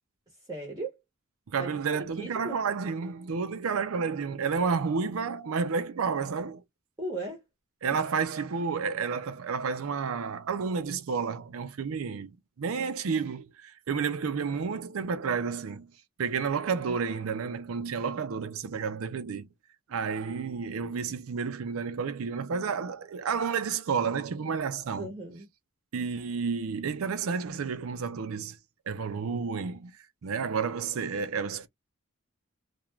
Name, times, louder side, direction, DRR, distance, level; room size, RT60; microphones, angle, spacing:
voice 1, 0.5-0.9 1.6-2.6 7.0-7.4 7.9-8.0 25.0-25.5, right 2 dB, 20° right, 0.8 m, -37 dB
voice 2, 1.5-6.6 7.8-15.9 16.2-19.5 19.9-25.1 25.9-28.6 28.9-29.9 30.2-31.7, right 5 dB, 90° right, 0.5 m, -31 dB
2.4 x 2.2 x 3.1 m
head